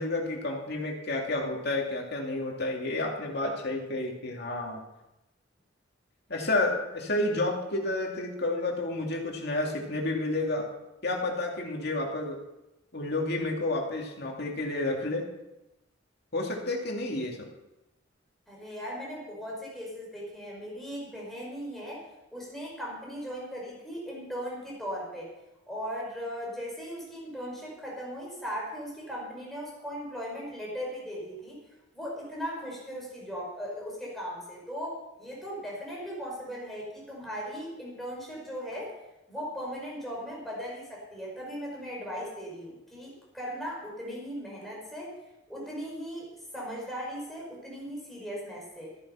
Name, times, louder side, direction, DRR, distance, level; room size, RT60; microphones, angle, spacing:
voice 1, 0.0-4.8 6.3-10.7 11.0-12.4 12.9-15.2 16.3-17.4, left 2 dB, 55° left, 0 dB, 2.5 m, -30 dB
voice 2, 18.5-22.0 22.3-25.3 25.7-31.6 31.9-39.0 39.3-45.2 45.5-48.9, equal, ahead, -4 dB, 5.3 m, -38 dB
14.0 x 10.5 x 5.7 m, 0.96 s
head